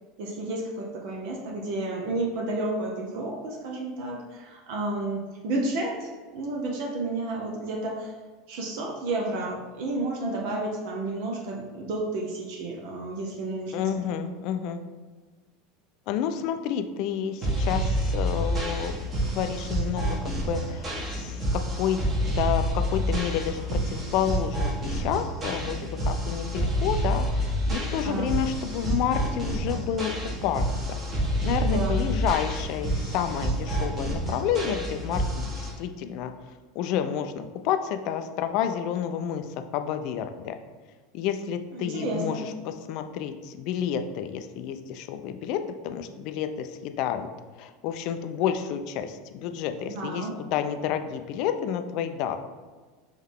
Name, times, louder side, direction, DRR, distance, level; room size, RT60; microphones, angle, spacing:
voice 1, 0.2-8.1 8.5-13.9 28.0-28.3 31.6-32.1 41.7-42.5 49.9-50.3, right 2 dB, 60° right, -1 dB, 0.6 m, -31 dB
voice 2, 13.7-14.8 16.1-18.9 19.3-22.0 22.3-30.1 30.4-30.9 31.4-36.3 36.7-39.5 39.7-40.6 41.1-47.3 47.6-52.4, left 9 dB, 55° left, 8 dB, 0.3 m, -30 dB
sound 1, 17.4-35.7, right 1 dB, 30° right, 1.3 m, -28 dB
3.6 x 3.1 x 3.6 m, 1.4 s
figure-of-eight pair, 80°, 0 cm